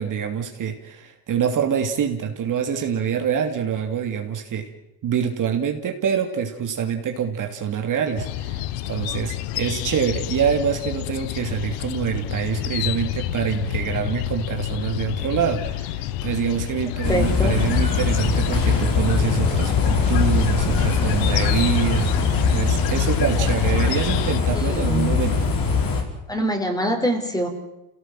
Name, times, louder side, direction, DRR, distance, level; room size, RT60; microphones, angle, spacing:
voice 1, 0.0-4.7 5.0-25.4, right 8 dB, 45° right, 4 dB, 2.9 m, -25 dB
sound 1, 8.2-24.4, left 13 dB, 85° left, 1.2 m, -29 dB
sound 2, 17.0-26.0, left 5 dB, 50° left, 5.7 m, -21 dB
voice 2, 17.1-17.5 24.5-25.1 26.3-27.5, equal, 10° left, 5 dB, 4.8 m, -24 dB
27.5 x 17.5 x 7.8 m, 0.93 s
supercardioid pair, 110°, 44 cm